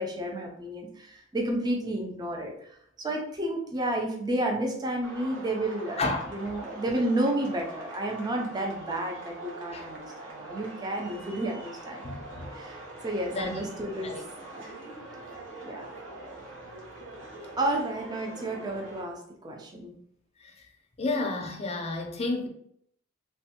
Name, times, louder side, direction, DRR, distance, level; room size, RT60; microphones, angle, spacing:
voice 1, 0.0-2.7 3.0-6.0 6.3-12.0 12.5-14.1 14.5-14.6 15.6-15.9 17.6-19.9, right 1 dB, 20° right, 1 dB, 0.4 m, -31 dB
sound 1, 5.0-19.0, right 2 dB, 70° right, 0.9 m, -43 dB
voice 2, 6.0-6.3 9.7-9.8 12.0-12.5 13.3-13.7 14.0-14.2 20.4-20.7 21.0-22.5, left 2 dB, 30° left, 3 dB, 0.5 m, -31 dB
3.2 x 2.2 x 2.8 m, 0.68 s
head